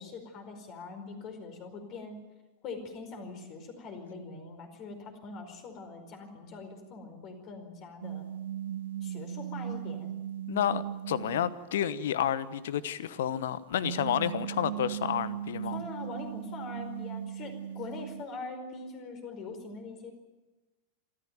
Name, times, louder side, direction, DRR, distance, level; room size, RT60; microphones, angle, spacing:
voice 1, 0.0-2.2 2.6-8.3 9.0-10.1 15.7-20.1, left 3 dB, 35° left, 6 dB, 4.8 m, -43 dB
sound 1, 8.0-12.0 13.7-18.2, right 10 dB, 60° right, 0.7 m, -38 dB
voice 2, 10.5-15.8, left 10 dB, 60° left, 17 dB, 1.1 m, -30 dB
27.0 x 14.0 x 9.2 m, 1.2 s
figure-of-eight pair, 90°, 0 cm